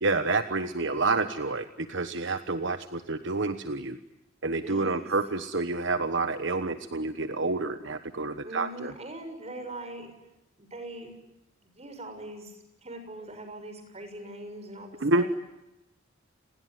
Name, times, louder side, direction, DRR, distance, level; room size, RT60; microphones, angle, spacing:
voice 1, 0.0-4.0 4.4-8.9 15.0-15.3, right 3 dB, 65° right, 10 dB, 1.2 m, -28 dB
voice 2, 4.6-5.2 8.4-10.1 10.6-11.1 11.6-15.3, right 1 dB, 35° right, 6 dB, 6.7 m, -41 dB
29.5 x 21.0 x 9.5 m, 0.93 s
head